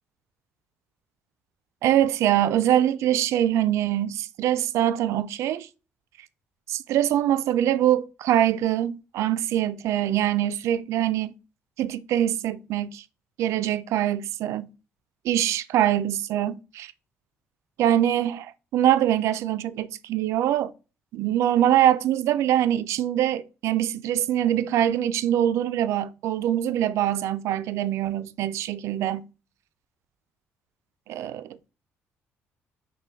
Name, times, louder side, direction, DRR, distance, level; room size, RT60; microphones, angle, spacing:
voice 1, 1.8-5.7 6.7-11.3 11.8-13.0 13.4-14.7 15.2-16.9 17.8-20.7 21.1-29.3 31.1-31.7, right 11 dB, 75° right, 0.3 m, -23 dB
5.7 x 2.2 x 3.4 m
cardioid pair, 85°, 5 cm